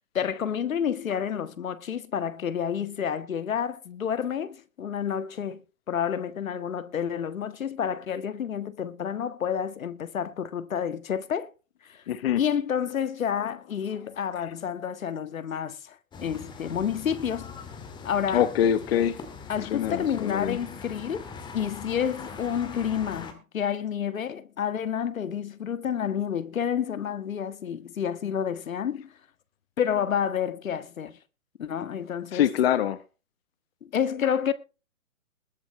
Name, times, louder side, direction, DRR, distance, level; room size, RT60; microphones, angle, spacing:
voice 1, 0.1-11.5 11.8-12.0 12.3-17.5 18.0-18.5 19.5-29.1 29.8-31.2 31.6-32.5 33.8-34.5, left 8 dB, 70° left, 1.7 m, -29 dB
voice 2, 12.1-12.4 18.3-19.2 19.6-20.6 32.3-33.0, left 10 dB, 45° left, 1.0 m, -24 dB
sound 1, 16.1-23.3, left 5 dB, 10° left, 2.0 m, -42 dB
21.0 x 8.8 x 3.1 m
hypercardioid pair, 140°, 43 cm